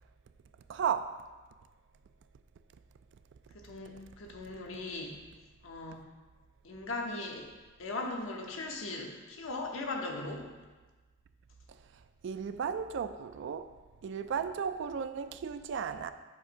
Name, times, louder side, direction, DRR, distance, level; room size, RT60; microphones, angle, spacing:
voice 1, 0.7-1.1 12.2-13.7 14.0-16.1, right 7 dB, 65° right, 11 dB, 0.3 m, -34 dB
voice 2, 3.5-5.1 5.6-6.0 6.6-7.5 7.8-10.5, left 2 dB, 80° left, 1 dB, 0.8 m, -38 dB
7.3 x 2.6 x 5.1 m, 1.3 s
head